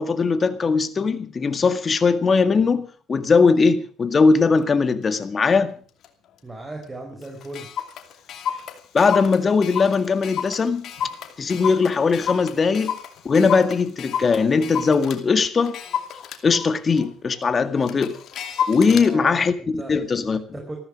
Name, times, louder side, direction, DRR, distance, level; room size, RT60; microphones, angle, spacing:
voice 1, 0.0-5.7 8.9-10.9 11.4-13.0 13.3-15.8 16.4-18.2 18.7-20.4, left 4 dB, 35° left, 1.9 m, -20 dB
Clock, 4.6-4.7 5.2-5.5 6.0-6.1 6.4-6.5 6.8-6.9 7.2-15.2 15.6-19.1, left 8 dB, 65° left, 2.6 m, -31 dB
voice 2, 6.4-7.7 18.9-19.9 20.3-20.8, right 1 dB, 20° right, 5.0 m, -37 dB
15.0 x 13.5 x 6.4 m
supercardioid pair, 85°, 0 cm